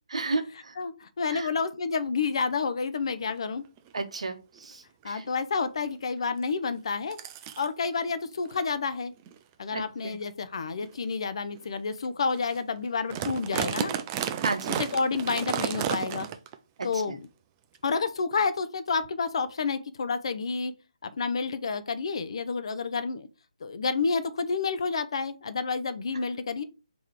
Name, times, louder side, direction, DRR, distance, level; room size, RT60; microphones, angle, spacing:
voice 1, 0.1-0.7 1.3-1.5 3.9-5.2 9.7-10.2 14.4-14.8 17.1-17.2, right 3 dB, 65° right, 1.0 m, -33 dB
voice 2, 0.8-3.6 5.0-7.2 7.6-9.1 9.6-13.9 14.8-16.3 16.8-17.2 17.8-20.7 21.0-23.3 23.6-26.6, left 4 dB, 50° left, 0.5 m, -29 dB
sound 1, 3.3-3.4 3.8-4.0 4.6-4.7 5.0-5.3 6.4-6.5 7.1-7.7 8.4-8.6 9.2-9.4 10.0-10.1 10.8-11.0 11.5-11.6 12.0-12.1 12.3-12.6 12.9-16.5 16.8-16.9 17.7-17.8, right 9 dB, 20° right, 0.3 m, -32 dB
3.8 x 3.0 x 4.7 m
figure-of-eight pair, 145°, 4 cm